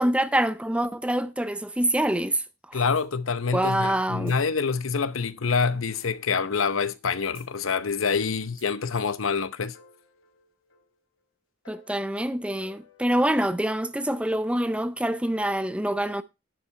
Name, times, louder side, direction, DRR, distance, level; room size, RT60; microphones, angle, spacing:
voice 1, 0.0-2.4 2.7-2.8 3.5-4.3 11.7-16.2, right 1 dB, 5° right, 0.5 m, -25 dB
voice 2, 2.7-9.7, left 5 dB, 90° left, 0.8 m, -26 dB
sound 1, 2.9-3.2 4.3-4.5 6.0-6.2 7.3-7.6 8.6-8.8, right 6 dB, 45° right, 5.5 m, -53 dB
sound 2, 5.9-7.1 7.4-7.5 7.8-9.4 9.7-11.2 11.6-13.5, left 5 dB, 70° left, 3.5 m, -57 dB
10.5 x 7.4 x 4.3 m
head